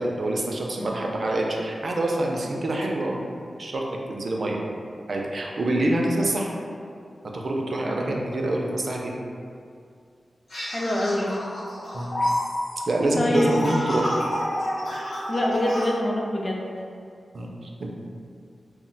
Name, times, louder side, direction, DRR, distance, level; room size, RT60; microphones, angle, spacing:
voice 1, 0.0-3.2 3.6-4.6 5.1-6.5 7.3-9.1 11.9-12.2 12.9-14.1 17.3-17.9, right 1 dB, 50° right, -1 dB, 0.3 m, -26 dB
sound 1, 10.5-15.9, left 1 dB, 65° left, 0.9 m, -29 dB
voice 2, 10.7-11.4 13.2-14.0 15.3-16.7, left 1 dB, 30° left, -2 dB, 0.3 m, -25 dB
2.1 x 2.1 x 3.8 m, 2.3 s
wide cardioid pair, 150°, 0 cm